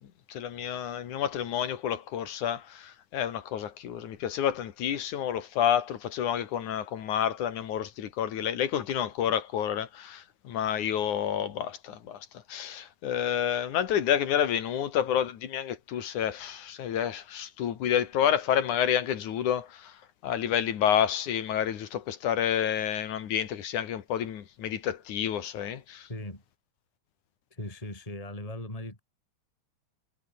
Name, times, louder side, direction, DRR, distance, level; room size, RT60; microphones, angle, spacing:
voice 1, 0.3-26.1, left 9 dB, 80° left, 3.3 m, -29 dB
voice 2, 26.1-26.4 27.5-29.0, left 1 dB, 10° left, 4.1 m, -38 dB
omnidirectional pair, 3.4 m